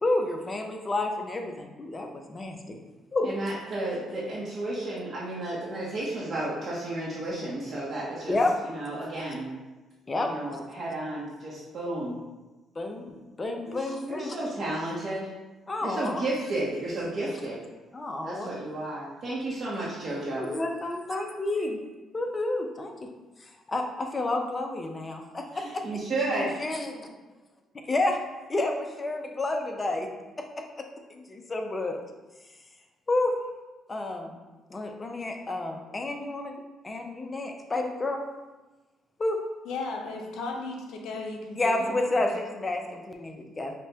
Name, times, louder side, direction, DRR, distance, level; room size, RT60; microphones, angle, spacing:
voice 1, 0.0-2.8 3.1-3.6 8.3-8.5 10.1-10.3 12.8-14.4 15.7-16.2 17.9-18.5 20.2-21.8 22.1-22.9 23.4-25.8 26.4-27.1 27.9-28.2 28.5-30.1 30.8-32.0 33.1-33.3 33.9-34.4 34.7-38.2 39.2-39.4 41.5-43.7, left 2 dB, 25° left, 3 dB, 0.5 m, -30 dB
voice 2, 3.2-8.4 8.6-9.5 10.2-12.1 13.6-15.3 15.8-17.6 18.2-20.5 25.5-26.5, right 2 dB, 50° right, -7 dB, 0.8 m, -32 dB
voice 3, 39.6-42.2, left 3 dB, 85° left, 1 dB, 0.5 m, -36 dB
5.2 x 2.2 x 2.8 m, 1.2 s
cardioid pair, 100°, 0 cm